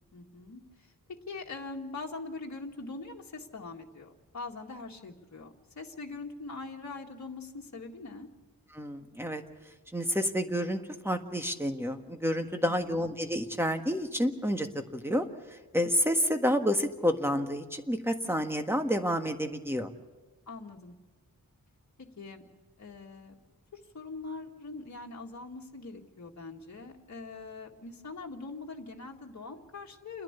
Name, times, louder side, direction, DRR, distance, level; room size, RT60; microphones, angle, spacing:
voice 1, 0.1-8.3 12.7-13.1 20.5-21.0 22.2-22.4 22.8-23.4 23.7-30.2, left 3 dB, 50° left, 0 dB, 2.0 m, -43 dB
voice 2, 8.7-9.4 9.9-15.2 15.7-19.9, equal, 5° right, 5 dB, 1.5 m, -29 dB
29.5 x 10.5 x 8.3 m, 1.2 s
wide cardioid pair, 100°, 36 cm